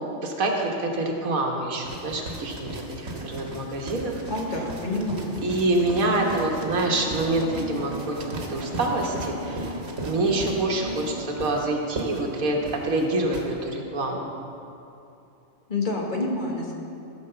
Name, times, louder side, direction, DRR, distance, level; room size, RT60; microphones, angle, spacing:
voice 1, 0.2-4.2 5.4-14.3, right 2 dB, 80° right, 1 dB, 1.5 m, -26 dB
sound 1, 1.8-13.5, right 1 dB, 50° right, 1.5 m, -37 dB
voice 2, 4.3-5.4 15.7-16.7, left 2 dB, 35° left, -1 dB, 1.5 m, -28 dB
sound 2, 5.8-11.4, equal, 20° right, 1.1 m, -37 dB
14.0 x 5.2 x 6.8 m, 2.7 s
omnidirectional pair, 1.4 m